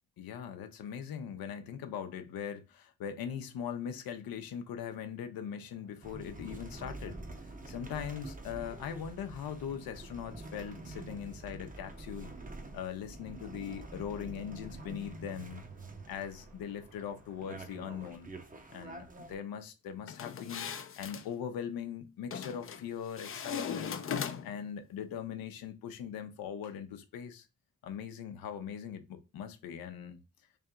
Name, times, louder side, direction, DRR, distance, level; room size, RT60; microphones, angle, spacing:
voice 1, 0.2-7.2 7.7-12.3 12.7-15.6 16.1-18.3 18.7-20.7 21.0-24.0 24.4-27.5 27.8-30.2, left 8 dB, 75° left, 0.7 m, -40 dB
sound 1, 5.4-18.2, right 4 dB, 75° right, 1.2 m, -63 dB
sound 2, 6.0-19.3, right 2 dB, 25° right, 0.8 m, -47 dB
sound 3, 20.1-21.3 22.3-22.8 23.2-24.7, left 7 dB, 35° left, 0.5 m, -38 dB
3.3 x 2.8 x 3.6 m
supercardioid pair, 45°, 36 cm